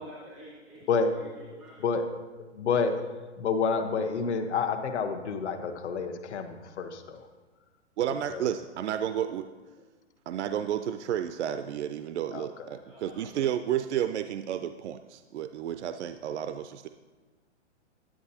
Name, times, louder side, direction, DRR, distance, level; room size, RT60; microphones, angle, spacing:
voice 1, 0.0-1.9 12.8-13.5, equal, ahead, -7 dB, 0.4 m, -48 dB
voice 2, 2.6-3.0 3.4-7.2 8.3-8.4 12.3-12.5, left 5 dB, 70° left, 6 dB, 1.0 m, -28 dB
voice 3, 8.0-9.5 10.3-16.9, right 10 dB, 70° right, 10 dB, 0.5 m, -31 dB
10.0 x 9.6 x 2.8 m, 1.3 s
hypercardioid pair, 165°, 36 cm